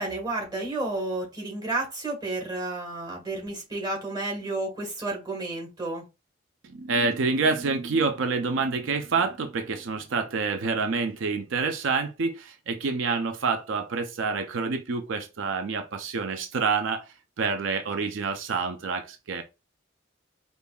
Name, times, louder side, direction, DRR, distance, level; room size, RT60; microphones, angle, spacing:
voice 1, 0.0-6.0, right 2 dB, 20° right, 1.3 m, -31 dB
voice 2, 6.6-19.4, right 4 dB, 75° right, 0.5 m, -27 dB
5.2 x 2.4 x 2.3 m
head